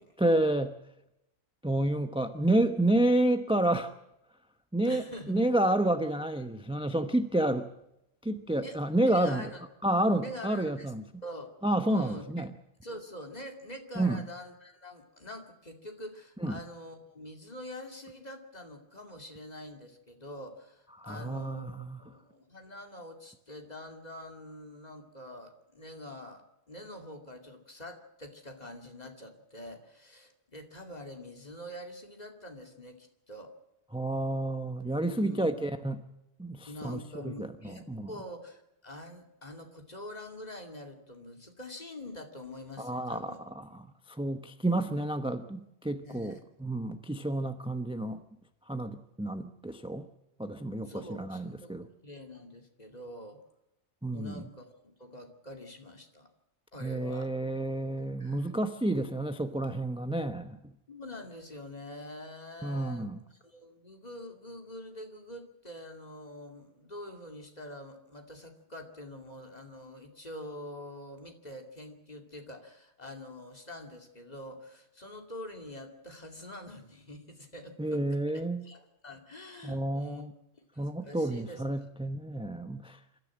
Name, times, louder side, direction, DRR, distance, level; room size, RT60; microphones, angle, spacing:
voice 1, 0.2-0.7 1.6-3.9 4.7-7.7 8.2-9.5 9.8-11.0 11.6-12.5 14.0-14.2 16.4-16.5 21.0-22.0 33.9-36.0 36.4-37.0 37.4-38.1 42.8-43.8 44.1-48.2 48.7-50.0 50.4-51.9 54.0-54.4 56.8-60.7 62.6-63.2 77.8-78.6 79.6-80.3 80.8-83.0, right 1 dB, 5° right, 9 dB, 0.7 m, -30 dB
voice 2, 4.8-5.5 8.6-9.6 10.2-11.0 11.2-11.6 11.9-12.5 12.8-21.7 22.0-33.5 35.0-35.5 36.7-43.5 46.0-46.4 50.8-53.4 54.1-56.3 56.7-57.3 58.2-58.5 60.9-63.1 63.4-80.3 80.7-81.9, left 1 dB, 35° left, 4 dB, 2.6 m, -45 dB
27.0 x 13.5 x 7.5 m, 0.86 s
omnidirectional pair, 1.2 m